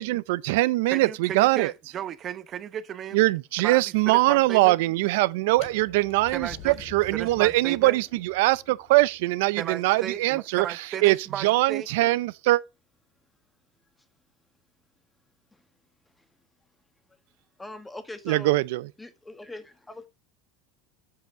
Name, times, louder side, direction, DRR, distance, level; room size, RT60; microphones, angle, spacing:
voice 1, 0.0-1.7 3.1-12.6 18.3-18.9, right 19 dB, 75° right, 0.5 m, -22 dB
voice 2, 0.9-3.2 3.6-4.8 6.3-6.8 7.1-8.0 9.6-12.1, right 9 dB, 40° right, 0.9 m, -35 dB
sound 1, 5.5-11.4, left 6 dB, 60° left, 3.4 m, -48 dB
voice 3, 17.6-18.5 19.0-20.1, left 2 dB, 10° left, 1.4 m, -41 dB
7.8 x 5.6 x 5.8 m
supercardioid pair, 115°, 0 cm